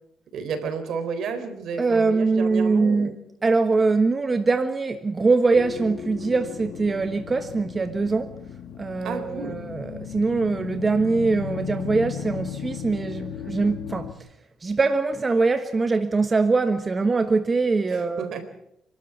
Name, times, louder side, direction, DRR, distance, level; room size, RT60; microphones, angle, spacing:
voice 1, 0.3-3.2 9.0-9.6 17.9-18.5, right 5 dB, 75° right, 3.9 m, -32 dB
voice 2, 1.8-3.2 3.4-8.4 8.8-14.1 14.6-18.3, right 3 dB, 30° right, 1.3 m, -23 dB
sound 1, 5.5-14.1, left 9 dB, 75° left, 2.1 m, -36 dB
27.5 x 13.0 x 8.2 m
cardioid pair, 90°, 0 cm